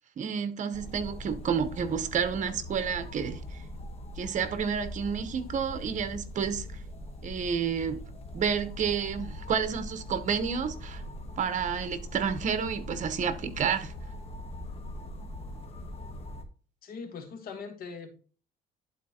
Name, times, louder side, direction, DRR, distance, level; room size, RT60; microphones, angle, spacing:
voice 1, 0.2-3.4 4.2-6.7 7.2-8.0 8.3-11.0 11.4-13.9, right 7 dB, 45° right, 1.0 m, -30 dB
sound 1, 0.7-16.4, left 1 dB, 35° left, 1.2 m, -41 dB
voice 2, 16.8-18.1, left 5 dB, 60° left, 1.4 m, -41 dB
11.0 x 4.1 x 2.9 m
cardioid pair, 110°, 17 cm